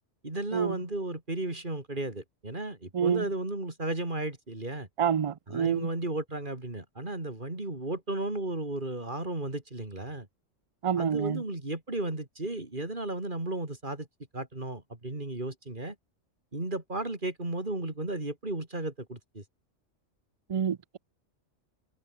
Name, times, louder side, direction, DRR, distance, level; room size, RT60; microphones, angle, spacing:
voice 1, 0.2-4.9 5.5-10.3 11.0-14.1 14.3-16.0 16.5-19.4, right 2 dB, 40° right, 4.2 m, -34 dB
voice 2, 2.9-3.2 5.0-5.9 10.8-11.4 20.5-21.0, right 7 dB, 60° right, 0.3 m, -27 dB
omnidirectional pair, 1.3 m